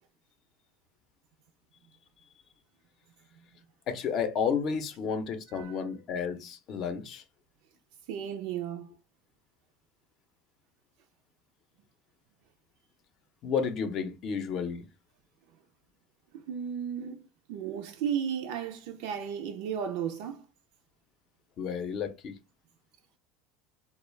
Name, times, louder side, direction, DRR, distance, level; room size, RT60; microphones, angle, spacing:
voice 1, 3.9-7.2 13.4-14.8 21.6-22.3, left 6 dB, 45° left, 0.6 m, -31 dB
voice 2, 5.5-5.8 8.1-8.9 16.3-17.2 17.5-20.4, right 8 dB, 75° right, 0.3 m, -34 dB
2.3 x 2.0 x 3.1 m
supercardioid pair, 120°, 0 cm